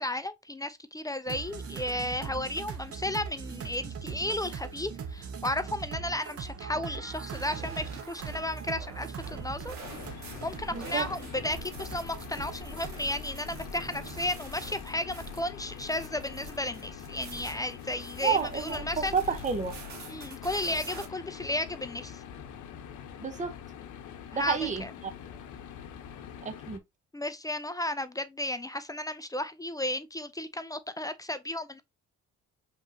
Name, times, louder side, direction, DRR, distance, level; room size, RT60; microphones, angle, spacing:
voice 1, 0.0-9.8 10.0-19.1 20.1-22.2 24.3-24.7 27.1-31.8, left 1 dB, 10° left, 0.4 m, -34 dB
sound 1, 1.3-12.9, right 6 dB, 50° right, 0.8 m, -41 dB
sound 2, 7.3-21.1, right 2 dB, 65° right, 1.4 m, -45 dB
sound 3, 9.8-26.8, left 8 dB, 75° left, 0.8 m, -45 dB
voice 2, 10.7-11.1 18.2-19.8 23.2-23.5 24.3-24.9 26.4-26.8, right 6 dB, 25° right, 0.8 m, -30 dB
5.1 x 3.2 x 2.7 m
cardioid pair, 90°, 30 cm